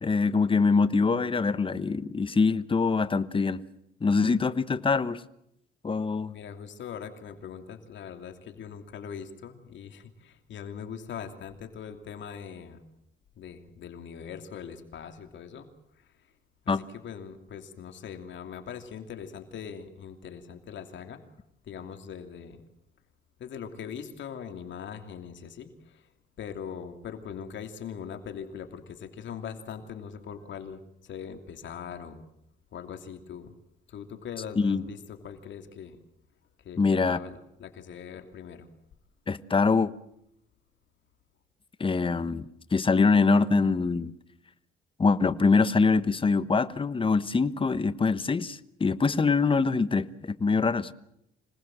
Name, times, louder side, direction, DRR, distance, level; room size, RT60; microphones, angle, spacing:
voice 1, 0.0-3.6 4.0-5.2 5.8-6.3 16.7-16.8 34.6-34.8 36.8-37.2 39.3-39.9 41.8-44.1 45.0-50.9, left 4 dB, 25° left, 1.1 m, -24 dB
voice 2, 6.3-12.8 13.4-15.7 16.0-16.3 16.6-21.2 21.6-22.6 23.4-26.1 26.4-32.2 32.7-33.5 33.9-36.0 36.6-38.7, left 7 dB, 70° left, 2.8 m, -41 dB
26.0 x 19.0 x 7.6 m
cardioid pair, 90°, 20 cm